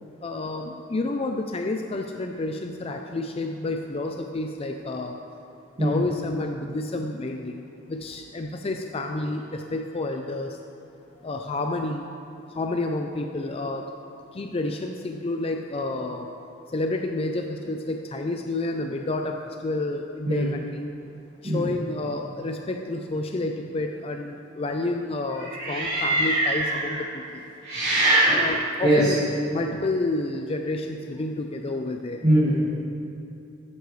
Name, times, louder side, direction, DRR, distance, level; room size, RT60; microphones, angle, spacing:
voice 1, 0.2-5.1 5.8-7.5 7.9-10.6 11.2-12.0 12.5-13.8 14.3-16.3 16.7-20.8 21.4-27.4 28.3-29.2 29.5-32.2, left 2 dB, 30° left, 3 dB, 0.4 m, -30 dB
voice 2, 25.6-27.0 27.6-29.1 32.2-32.6, right 1 dB, 35° right, -10 dB, 2.2 m, -22 dB
13.5 x 9.7 x 3.2 m, 2.8 s
head